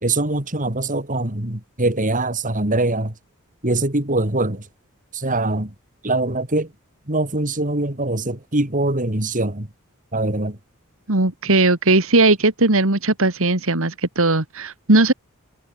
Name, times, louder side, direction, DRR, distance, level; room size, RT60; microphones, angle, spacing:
voice 1, 0.0-3.1 3.6-4.6 5.1-5.7 6.0-6.7 7.1-9.7 10.1-10.6, right 2 dB, 35° right, 3.6 m, -23 dB
voice 2, 11.1-15.1, right 2 dB, 65° right, 2.5 m, -18 dB
head